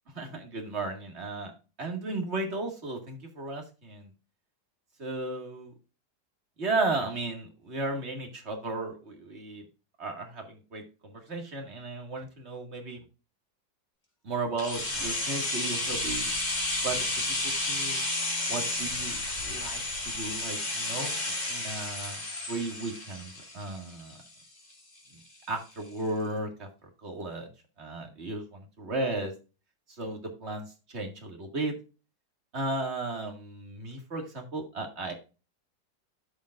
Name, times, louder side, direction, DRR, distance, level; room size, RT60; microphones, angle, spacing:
voice 1, 0.1-4.1 5.0-5.7 6.6-9.6 10.0-13.0 14.2-16.3 16.8-18.0 18.5-22.2 22.5-24.2 25.5-26.7 27.0-27.5 27.8-29.3 29.9-30.7 30.9-31.7 32.5-35.1, right 2 dB, 35° right, 2 dB, 2.2 m, -35 dB
sound 1, 14.6-24.4 24.7-24.8, left 2 dB, 25° left, 2.2 m, -32 dB
14.0 x 5.5 x 2.5 m, 0.32 s
omnidirectional pair, 1.9 m